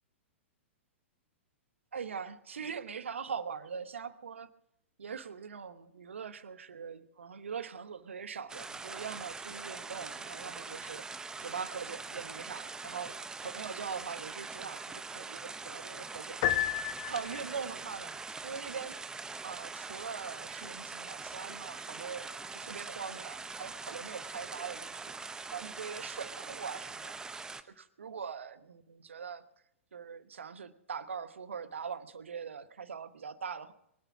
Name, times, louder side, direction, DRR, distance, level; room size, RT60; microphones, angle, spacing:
voice 1, 1.9-4.5 5.0-11.1 11.4-16.7 17.1-19.0 19.4-25.1 25.5-27.1 27.8-29.4 29.9-33.7, right 6 dB, 70° right, 13 dB, 1.1 m, -42 dB
sound 1, 8.5-27.6, right 4 dB, 10° right, 0.9 m, -43 dB
Piano, 16.4-17.7, left 12 dB, 45° left, 1.1 m, -31 dB
23.5 x 9.2 x 6.0 m, 0.79 s
figure-of-eight pair, 105°, 7 cm